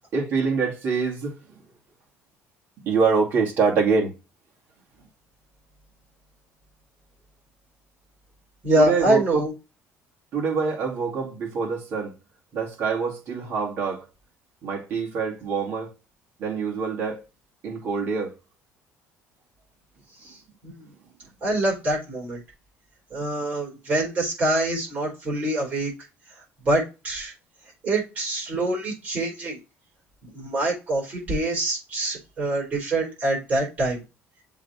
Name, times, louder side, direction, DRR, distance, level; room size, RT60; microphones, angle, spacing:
voice 1, 0.1-1.6 2.8-4.1 8.8-9.4 10.3-12.2 12.5-14.1 14.6-15.9 16.4-17.2 17.6-18.3, right 5 dB, 45° right, 2.6 m, -25 dB
voice 2, 8.6-9.5 20.2-20.4 20.6-20.9 21.4-22.4 23.1-25.9 26.6-27.3 27.8-29.6 30.2-34.0, right 2 dB, 30° right, 4.2 m, -25 dB
7.4 x 3.6 x 4.3 m
cardioid pair, 165°, 5 cm